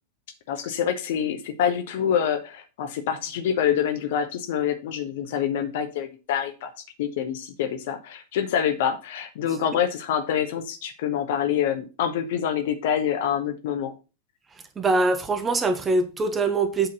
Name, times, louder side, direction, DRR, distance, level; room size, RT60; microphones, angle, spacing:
voice 1, 0.5-6.7 7.0-13.9, left 9 dB, 55° left, 1.3 m, -26 dB
voice 2, 14.8-16.9, right 3 dB, 20° right, 1.3 m, -23 dB
8.0 x 4.3 x 5.5 m
figure-of-eight pair, 90°, 0 cm